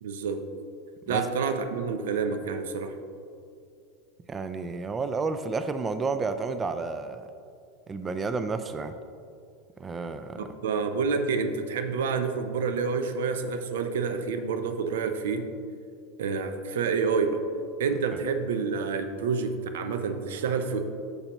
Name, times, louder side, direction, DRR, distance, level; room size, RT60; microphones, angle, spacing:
voice 1, 0.0-0.4 1.1-3.0 10.4-15.5 16.2-17.5 17.8-20.9, right 5 dB, 85° right, 8 dB, 0.6 m, -28 dB
voice 2, 4.3-7.3 7.9-8.9 9.8-10.5, right 4 dB, 20° right, 10 dB, 0.3 m, -31 dB
8.6 x 6.6 x 3.0 m, 2.4 s
supercardioid pair, 120°, 0 cm